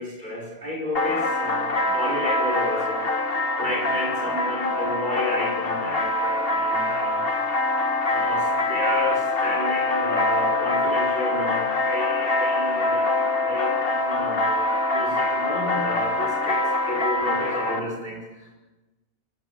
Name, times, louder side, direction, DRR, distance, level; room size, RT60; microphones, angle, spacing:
voice 1, 0.0-7.3 8.1-18.5, left 1 dB, 45° right, -1 dB, 5.3 m, -31 dB
sound 1, 0.9-17.8, left 2 dB, 65° left, 1.8 m, -24 dB
29.0 x 16.0 x 8.3 m, 1.1 s
omnidirectional pair, 1.1 m